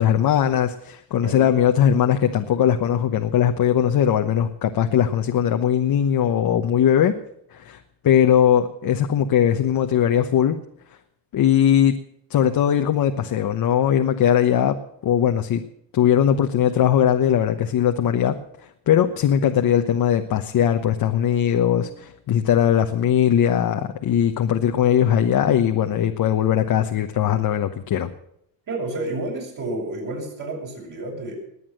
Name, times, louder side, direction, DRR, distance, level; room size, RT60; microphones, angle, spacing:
voice 1, 0.0-7.1 7.5-7.8 8.0-10.6 11.3-11.9 12.3-14.8 15.0-15.6 15.9-18.3 18.9-28.1, left 9 dB, 55° left, 5 dB, 1.1 m, -19 dB
voice 2, 28.7-31.3, right 2 dB, 45° right, -2 dB, 7.9 m, -30 dB
20.5 x 8.6 x 7.6 m, 0.72 s
cardioid pair, 110°, 43 cm